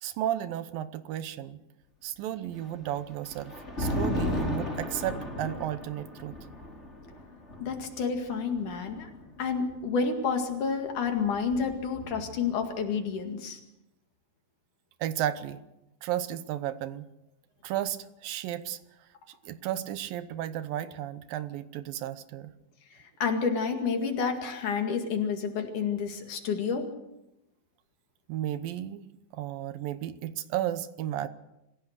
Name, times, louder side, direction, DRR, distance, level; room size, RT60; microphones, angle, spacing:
voice 1, 0.0-1.6 2.0-6.4 15.0-15.6 16.0-17.1 17.6-18.8 19.4-22.5 28.3-29.0 29.3-31.3, right 12 dB, 80° right, 13 dB, 2.6 m, -33 dB
Thunder, 2.5-9.7 10.8-12.5, left 1 dB, 20° left, 4.5 m, -35 dB
voice 2, 7.6-9.1 9.4-13.6 23.2-26.9, left 5 dB, 60° left, 5 dB, 3.5 m, -29 dB
27.0 x 16.0 x 6.6 m, 0.91 s
omnidirectional pair, 4.1 m